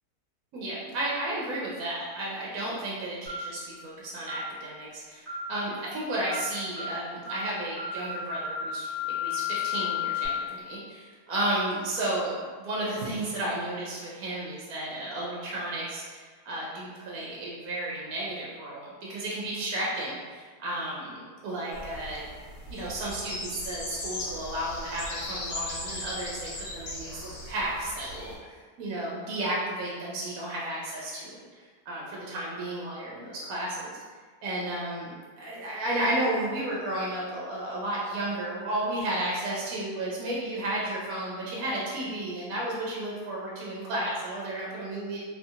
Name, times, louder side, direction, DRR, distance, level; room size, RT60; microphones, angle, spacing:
voice 1, 0.5-22.2 22.7-33.9 34.4-45.2, right 1 dB, 75° right, -5 dB, 1.0 m, -33 dB
sound 1, 3.3-3.5 4.3-4.5 5.3-5.5 6.3-6.5 6.8-7.0 7.3-7.5 7.8-10.3, left 7 dB, ahead, 1.1 m, -32 dB
sound 2, 21.7-28.4, left 2 dB, 60° left, 0.8 m, -38 dB
2.7 x 2.6 x 2.4 m, 1.5 s
omnidirectional pair, 1.6 m